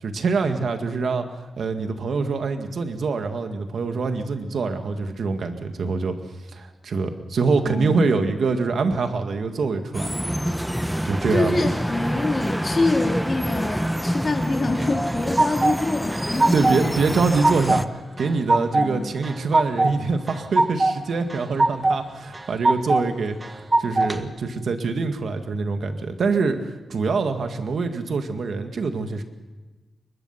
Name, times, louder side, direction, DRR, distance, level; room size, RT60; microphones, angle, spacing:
voice 1, 0.0-1.3 1.6-6.1 6.5-10.1 11.0-11.6 16.5-23.4 23.8-29.2, right 4 dB, 75° right, 6 dB, 2.0 m, -24 dB
voice 2, 7.6-8.2 11.3-16.8 18.8-19.1, left 2 dB, 40° left, 0 dB, 3.3 m, -25 dB
sound 1, 9.9-17.9, equal, ahead, 0.8 m, -27 dB
sound 2, 14.7-15.8 16.1-16.8 17.1-17.8 18.2-18.9 19.2-19.9 20.3-20.9 21.3-22.0 22.3-23.0 23.4-24.2, right 2 dB, 25° right, 1.5 m, -21 dB
23.0 x 20.5 x 5.9 m, 1.2 s
cardioid pair, 90°, 0 cm